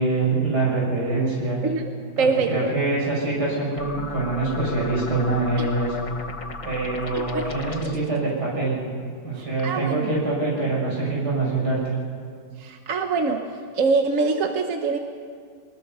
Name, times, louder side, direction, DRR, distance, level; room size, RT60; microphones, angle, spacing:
voice 1, 0.0-1.6 2.2-5.9 6.6-8.8 9.2-11.8, right 3 dB, 70° right, -4 dB, 7.5 m, -24 dB
voice 2, 2.2-2.7 5.6-5.7 7.1-7.5 7.8-7.9 9.3-10.1 12.6-13.4 13.7-15.0, right 4 dB, 55° right, 5 dB, 1.3 m, -24 dB
sound 1, 3.8-8.2, left 3 dB, 30° left, 0.7 m, -36 dB
24.0 x 20.5 x 5.6 m, 2.1 s
omnidirectional pair, 1.8 m